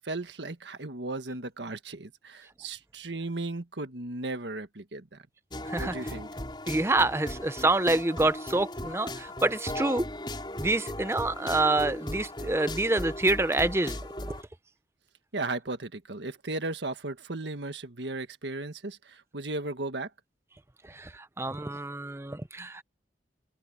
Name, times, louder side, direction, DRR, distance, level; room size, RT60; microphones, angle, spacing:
voice 1, 0.0-5.2 5.8-6.3 15.3-20.1, right 2 dB, 85° right, 1.6 m, -36 dB
sound 1, 5.5-14.4, left 1 dB, 25° left, 5.4 m, -37 dB
voice 2, 6.7-10.1 10.6-14.0 14.3-14.4 20.9-21.1 21.4-22.8, right 2 dB, 15° right, 0.6 m, -27 dB
head